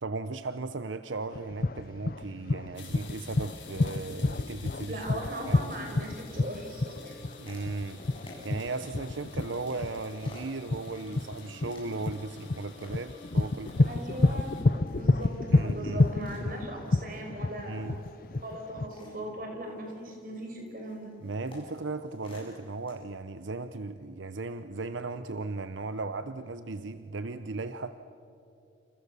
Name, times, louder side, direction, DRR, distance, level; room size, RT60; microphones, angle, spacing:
voice 1, 0.0-5.7 7.4-13.9 15.5-16.1 17.7-18.1 21.2-28.0, right 3 dB, 85° right, 11 dB, 0.8 m, -36 dB
sound 1, 1.3-18.9, left 2 dB, 50° left, 0.6 m, -28 dB
sound 2, 2.7-14.6, left 5 dB, 85° left, 6.1 m, -51 dB
voice 2, 4.9-7.2 13.8-17.8 18.4-21.2, right 1 dB, 45° right, 2 dB, 5.6 m, -39 dB
sound 3, 7.2-22.9, left 1 dB, 30° left, 8.0 m, -54 dB
28.5 x 28.0 x 7.0 m, 2.6 s
head